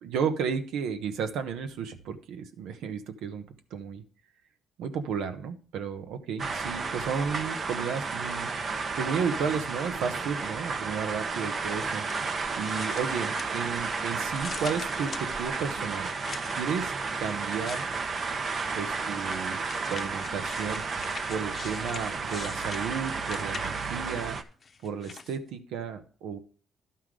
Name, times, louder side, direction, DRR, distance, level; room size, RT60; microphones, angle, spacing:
voice 1, 0.0-3.5 3.7-4.0 4.8-8.5 8.9-12.0 12.6-16.1 16.5-17.8 18.7-19.6 19.9-20.8 21.3-24.4 24.8-26.4, right 6 dB, 85° right, 8 dB, 1.0 m, -33 dB
sound 1, 6.4-24.4, right 4 dB, 45° right, 0.9 m, -32 dB
sound 2, 11.8-13.9 14.3-16.7 17.4-18.4 19.0-24.0 24.6-25.4, left 5 dB, 40° left, 0.8 m, -44 dB
11.0 x 5.7 x 4.9 m, 0.41 s
cardioid pair, 90°, 0 cm